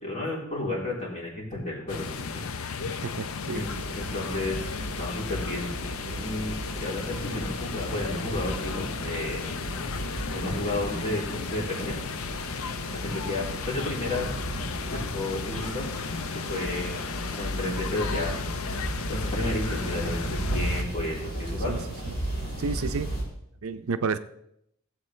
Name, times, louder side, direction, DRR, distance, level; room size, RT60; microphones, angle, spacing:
voice 1, 0.0-2.9 3.5-3.7 4.0-4.7 5.0-5.7 6.0-9.5 10.3-12.0 12.9-14.3 14.8-15.9 16.3-16.9 17.3-18.4 19.1-21.8, left 2 dB, 35° left, -4 dB, 3.4 m, -32 dB
sound 1, 1.9-20.8, left 5 dB, 75° left, 0.6 m, -35 dB
voice 2, 2.9-3.6 21.7-22.2 22.6-23.1 23.6-24.2, right 4 dB, 75° right, 11 dB, 0.5 m, -31 dB
sound 2, 3.5-23.2, right 1 dB, 60° left, 3.6 m, -35 dB
sound 3, 15.5-16.0 16.8-19.3 19.6-20.2 20.6-20.9 21.3-21.6, equal, 5° left, 3.0 m, -49 dB
16.0 x 7.8 x 3.2 m, 0.77 s
head